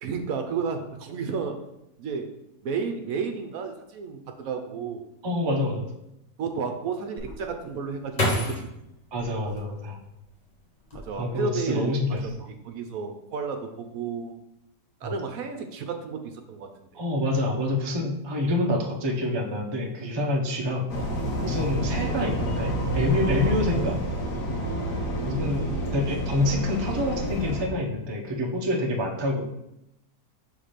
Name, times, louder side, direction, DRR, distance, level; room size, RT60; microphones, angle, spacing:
voice 1, 0.0-1.6 2.0-2.3 2.6-5.1 6.4-8.7 10.9-12.0 12.2-12.3 12.6-14.4 15.0-16.7 22.2-22.3 25.1-26.0, right 5 dB, 70° right, 6 dB, 1.0 m, -32 dB
voice 2, 5.2-5.9 9.1-10.0 11.2-12.2 15.0-15.1 16.9-20.8 21.4-24.0 25.2-25.7 25.9-29.4, left 1 dB, 30° right, 0 dB, 0.5 m, -27 dB
sound 1, 7.2-10.3 10.8-11.5 11.8-12.3, left 1 dB, 30° left, 1.1 m, -31 dB
sound 2, 20.9-27.7, right 1 dB, 85° left, 1.4 m, -29 dB
5.7 x 3.5 x 5.0 m, 0.86 s
omnidirectional pair, 1.7 m